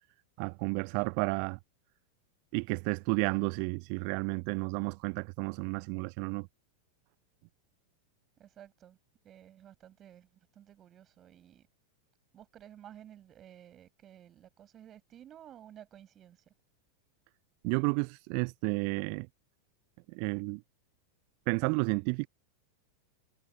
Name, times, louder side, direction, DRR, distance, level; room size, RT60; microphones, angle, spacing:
voice 1, 0.4-1.6 2.5-6.5 17.6-19.3 20.1-20.6 21.5-22.3, right 40 dB or more, 45° right, 0.3 m, -31 dB
voice 2, 8.4-9.0 9.2-11.7 12.3-16.5, right 11 dB, 30° right, 7.2 m, -54 dB
figure-of-eight pair, 90°, 0 cm